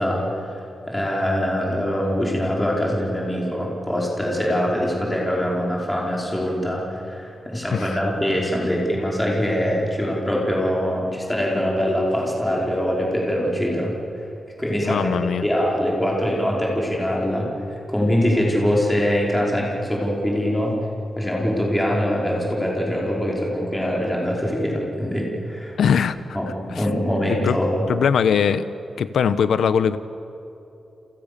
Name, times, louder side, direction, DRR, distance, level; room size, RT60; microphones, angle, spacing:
voice 1, 0.0-14.2 14.6-15.1 15.4-17.5 17.9-20.8 21.2-25.7 26.3-27.8, equal, 5° left, -3 dB, 5.1 m, -23 dB
voice 2, 14.8-15.5 25.8-26.1 26.7-26.9 27.3-27.6 27.9-28.7 29.0-30.0, left 7 dB, 85° left, 12 dB, 1.2 m, -20 dB
29.5 x 27.0 x 7.0 m, 2.9 s
wide cardioid pair, 175°, 0 cm